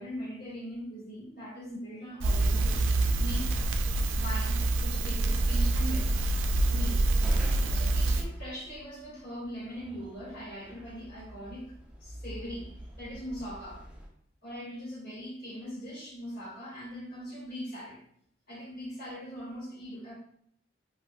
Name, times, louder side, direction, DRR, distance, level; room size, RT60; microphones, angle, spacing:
voice 1, 0.0-2.8 3.1-3.6 4.1-6.2 6.7-7.1 7.7-11.7 12.0-13.9 14.4-18.0 18.5-20.1, equal, 55° left, -6 dB, 1.5 m, -41 dB
Crackle, 2.2-8.2, right 2 dB, 90° right, 0.3 m, -26 dB
sound 1, 6.5-14.1, equal, 5° right, 0.5 m, -46 dB
3.4 x 2.5 x 2.4 m, 0.67 s
head